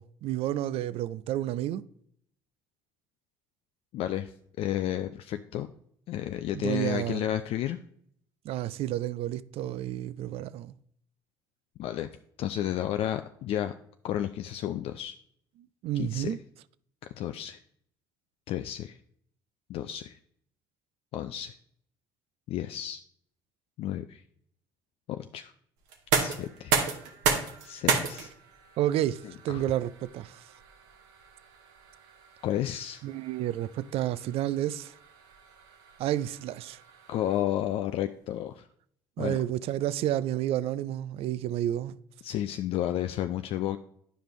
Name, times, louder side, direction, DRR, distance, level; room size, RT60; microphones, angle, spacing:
voice 1, 0.0-1.8 6.5-7.2 8.4-10.7 15.8-16.4 28.8-30.4 33.0-34.9 36.0-36.8 39.2-42.0, right 12 dB, 60° right, 0.4 m, -30 dB
voice 2, 3.9-4.3 4.6-5.7 6.1-7.8 11.8-12.1 12.4-13.8 14.0-15.1 16.0-16.3 17.2-17.6 18.5-19.0 19.7-20.2 21.1-21.5 22.5-23.0 23.8-24.2 25.1-25.5 26.1-26.7 27.6-28.3 29.5-29.6 32.4-33.0 37.1-38.7 39.2-39.4 42.2-43.8, left 12 dB, 60° left, 0.4 m, -32 dB
sound 1, 25.9-37.7, right 6 dB, 75° right, 1.1 m, -34 dB
9.9 x 5.1 x 3.0 m
hypercardioid pair, 60°, 11 cm